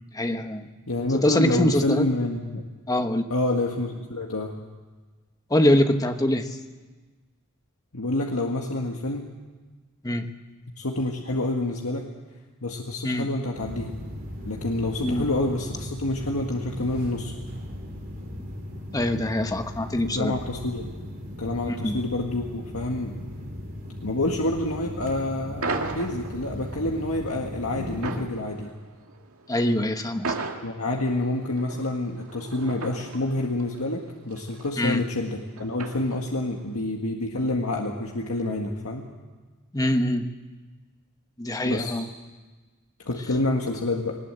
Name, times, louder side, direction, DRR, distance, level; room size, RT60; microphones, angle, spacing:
voice 1, 0.1-0.6 1.1-2.0 2.9-3.2 5.5-6.5 10.0-10.2 13.0-13.3 15.0-15.2 18.9-20.3 21.7-22.0 29.5-30.3 34.8-35.0 39.7-40.2 41.4-42.1, left 1 dB, 15° left, 7 dB, 1.2 m, -23 dB
voice 2, 0.9-2.6 3.3-4.5 7.9-9.3 10.8-12.1 12.6-13.9 14.4-17.3 20.1-20.9 21.4-23.2 24.0-28.7 30.6-39.0 41.6-42.0 43.0-44.2, left 2 dB, 85° left, 0 dB, 1.8 m, -28 dB
sound 1, 13.5-28.2, left 1 dB, 45° right, 3.0 m, -37 dB
sound 2, 25.6-36.5, right 3 dB, 80° right, 2.1 m, -37 dB
20.0 x 19.5 x 8.0 m, 1.3 s
head